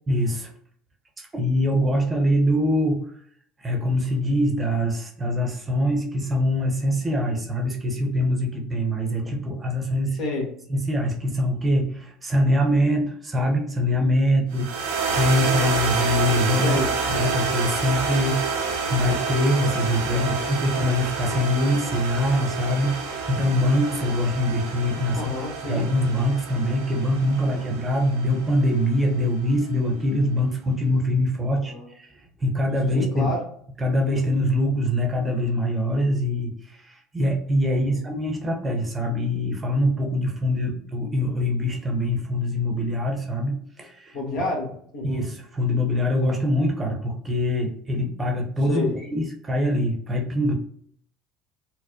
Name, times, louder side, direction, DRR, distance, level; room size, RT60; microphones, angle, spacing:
voice 1, 0.1-0.5 1.2-3.0 3.6-10.2 10.7-16.8 17.1-22.9 23.3-25.2 25.6-33.3 33.8-44.2 45.0-50.5, left 1 dB, 25° right, 1 dB, 0.9 m, -24 dB
voice 2, 10.2-10.5 16.6-16.9 20.1-20.5 25.1-25.9 27.6-27.7 31.6-31.9 32.9-33.4 37.8-38.1 44.1-45.2 48.7-49.0, left 2 dB, 55° left, -1 dB, 1.3 m, -29 dB
sound 1, 14.5-29.0, right 5 dB, 85° right, 0.8 m, -28 dB
4.2 x 2.1 x 2.7 m, 0.63 s
hypercardioid pair, 80°, 0 cm